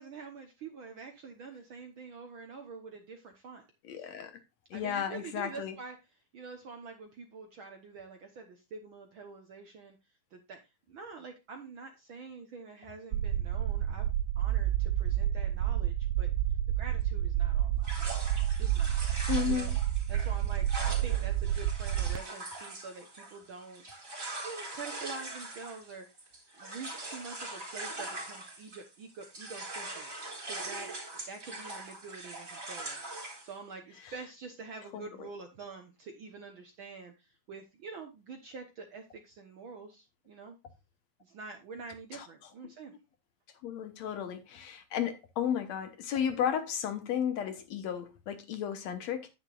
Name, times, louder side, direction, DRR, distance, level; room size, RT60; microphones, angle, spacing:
voice 1, 0.0-3.6 3.9-4.1 4.7-6.0 6.3-10.0 10.3-10.6 10.9-16.3 16.8-17.9 18.6-18.9 19.4-19.7 20.1-23.8 24.4-26.1 26.6-30.1 30.4-33.0 33.4-40.6 41.2-42.9, right 4 dB, 60° right, 1.5 m, -46 dB
voice 2, 3.8-4.3 4.7-5.8 19.3-19.7 34.0-34.1 34.9-35.3 42.1-42.3 42.6-42.7 43.6-49.3, left 9 dB, 65° left, 2.1 m, -33 dB
sound 1, 13.1-22.2, right 12 dB, 80° right, 1.6 m, -29 dB
sound 2, 17.8-28.9 29.2-33.5, right 2 dB, 25° right, 3.2 m, -42 dB
9.7 x 9.6 x 2.4 m
omnidirectional pair, 3.5 m